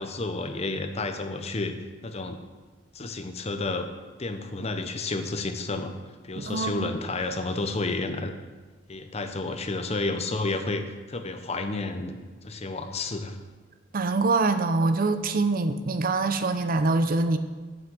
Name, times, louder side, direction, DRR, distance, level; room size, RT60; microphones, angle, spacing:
voice 1, 0.0-1.7 2.0-2.4 2.9-3.9 4.2-5.9 6.2-8.3 8.9-12.2 12.4-13.4, left 3 dB, 35° left, 6 dB, 0.8 m, -31 dB
voice 2, 6.4-6.9 13.9-17.4, right 3 dB, 45° right, 10 dB, 0.6 m, -24 dB
7.9 x 6.2 x 7.7 m, 1.3 s
head